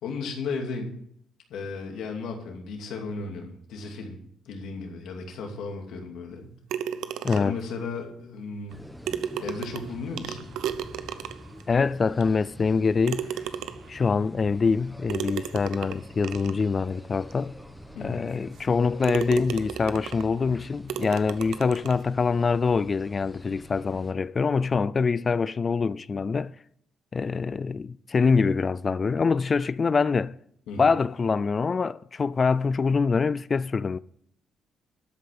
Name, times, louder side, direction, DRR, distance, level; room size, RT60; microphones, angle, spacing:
voice 1, 0.0-0.9 1.5-4.2 4.4-6.5 7.3-8.7 9.4-10.5 17.9-18.2 30.7-30.9, left 4 dB, 80° left, 2.7 m, -35 dB
sound 1, 6.7-7.7 8.7-8.8 9.1-11.6 12.2-12.3 13.0-14.0 15.1-16.6 17.3-17.4 17.9-18.0 18.5-18.7 19.0-20.3 20.9-22.0, right 9 dB, 85° right, 0.7 m, -34 dB
voice 2, 7.2-7.6 11.7-13.3 13.9-17.6 18.0-26.5 27.1-30.4 30.8-34.0, left 5 dB, 35° left, 0.4 m, -24 dB
sound 2, 8.7-24.1, left 1 dB, 5° left, 1.4 m, -46 dB
13.0 x 5.3 x 8.4 m
cardioid pair, 90°, 0 cm